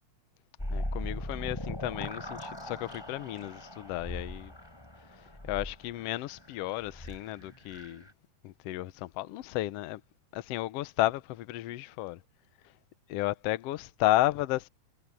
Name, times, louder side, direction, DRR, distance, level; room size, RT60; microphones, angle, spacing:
sound 1, 0.6-8.1, left 1 dB, 5° left, 5.2 m, -40 dB
voice 1, 0.7-4.5 5.4-8.0 8.4-10.0 10.3-12.2 13.1-14.7, left 16 dB, 90° left, 1.3 m, -32 dB
omnidirectional pair, 3.8 m